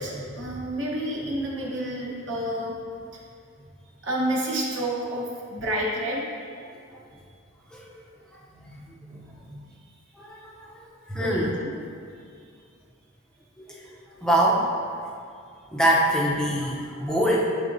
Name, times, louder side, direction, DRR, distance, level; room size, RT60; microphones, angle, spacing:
voice 1, 0.0-2.8 4.0-6.2 9.1-9.5 11.2-11.4, right 1 dB, 55° right, -4 dB, 1.1 m, -29 dB
voice 2, 7.7-8.0 8.6-9.2 9.5-9.6 10.1-10.8 11.1-11.6 13.6-13.9 14.2-14.7 15.7-17.4, right 1 dB, 5° left, -4 dB, 0.6 m, -25 dB
9.3 x 3.9 x 2.6 m, 2.3 s
head